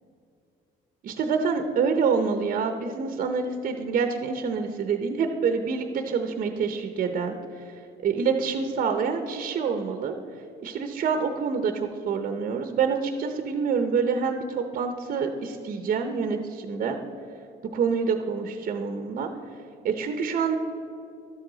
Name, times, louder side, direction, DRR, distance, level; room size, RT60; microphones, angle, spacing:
voice 1, 1.0-7.6 8.0-10.1 10.6-17.0 17.7-19.3 19.8-20.6, right 5 dB, 50° right, 6 dB, 0.7 m, -27 dB
12.5 x 7.9 x 3.9 m, 2.7 s
cardioid pair, 110°, 17 cm